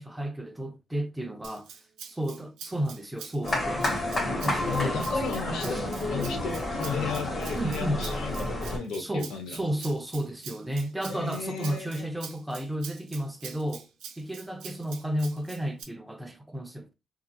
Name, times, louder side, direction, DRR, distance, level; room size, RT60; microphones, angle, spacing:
voice 1, 0.0-1.7 2.1-3.9 4.4-5.1 7.6-8.0 9.0-13.9 14.2-16.9, right 1 dB, 5° right, 0.5 m, -32 dB
Rattle (instrument), 1.4-15.8, right 7 dB, 85° right, 0.5 m, -45 dB
sound 1, 3.4-8.8, left 1 dB, 35° left, 1.0 m, -30 dB
voice 2, 4.5-5.8 6.1-9.6 11.1-12.1, left 5 dB, 80° left, 0.7 m, -34 dB
2.8 x 2.4 x 2.3 m
cardioid pair, 90°, 0 cm